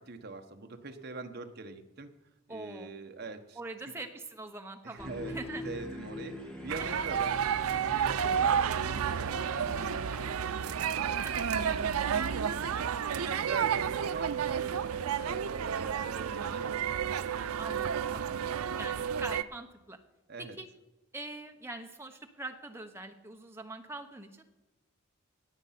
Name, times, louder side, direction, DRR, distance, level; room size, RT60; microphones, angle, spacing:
voice 1, 0.0-2.1 2.5-3.6 3.9-4.0 4.8-5.4 5.6-12.7 13.2-17.1 20.3-20.6, right 3 dB, 50° right, 6 dB, 1.1 m, -44 dB
voice 2, 2.5-2.9 3.6-5.6 6.9-7.0 11.2-11.3 13.2-13.5 17.6-18.4 18.8-20.0 20.4-20.7 21.1-24.4, right 2 dB, 10° right, 4 dB, 1.0 m, -43 dB
sound 1, 5.0-10.4, equal, 5° left, 1.7 m, -43 dB
sound 2, 6.7-19.4, right 7 dB, 90° right, 0.5 m, -31 dB
17.5 x 8.2 x 5.8 m, 1.0 s
head